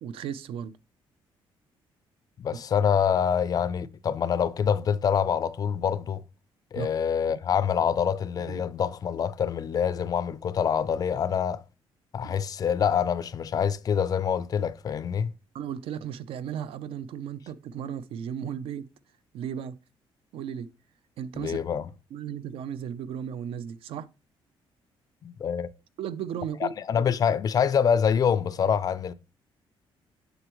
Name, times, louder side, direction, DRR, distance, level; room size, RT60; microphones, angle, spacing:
voice 1, 0.0-0.7 6.7-6.9 8.4-8.7 12.2-12.3 15.5-18.9 19.3-19.8 20.3-20.7 21.2-21.6 22.1-24.1 26.0-26.7, right 8 dB, 75° right, 0.6 m, -35 dB
voice 2, 2.4-6.2 6.7-11.6 12.1-15.3 21.4-21.9 25.2-25.7 26.6-29.1, left 7 dB, 40° left, 0.4 m, -26 dB
8.0 x 6.0 x 3.0 m
cardioid pair, 135°, 10 cm